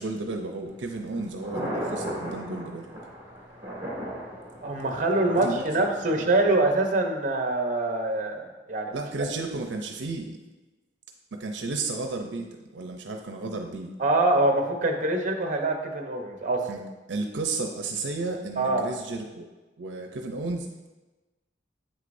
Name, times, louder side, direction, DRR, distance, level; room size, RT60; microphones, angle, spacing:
voice 1, 0.0-2.9 5.3-6.2 8.9-10.4 11.3-12.5 12.7-13.9 16.7-16.8 17.1-19.5 19.8-20.9, right 3 dB, 80° right, 4 dB, 0.6 m, -33 dB
Thunder, 0.7-6.7, equal, 15° right, 1.9 m, -37 dB
voice 2, 4.6-8.9 14.0-16.6 18.6-18.9, right 2 dB, 45° right, 4 dB, 0.8 m, -24 dB
8.1 x 6.4 x 2.6 m, 1.1 s
head